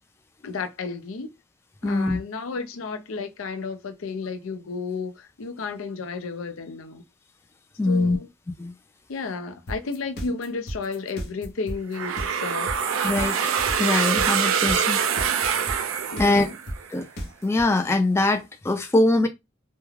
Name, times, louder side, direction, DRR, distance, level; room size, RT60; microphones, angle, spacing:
voice 1, 0.4-1.3 1.8-7.0 7.9-8.3 9.1-12.7 16.1-16.5, left 4 dB, 85° left, 0.5 m, -32 dB
voice 2, 1.8-2.2 7.8-8.2 8.6-8.7 13.0-13.4 13.8-15.1 15.4-16.5 16.9-17.1 17.4-19.3, left 2 dB, 15° left, 0.3 m, -23 dB
sound 1, 9.7-17.6, equal, 55° left, 0.7 m, -33 dB
sound 2, 11.9-16.9, right 7 dB, 80° right, 0.4 m, -24 dB
2.4 x 2.2 x 3.1 m
head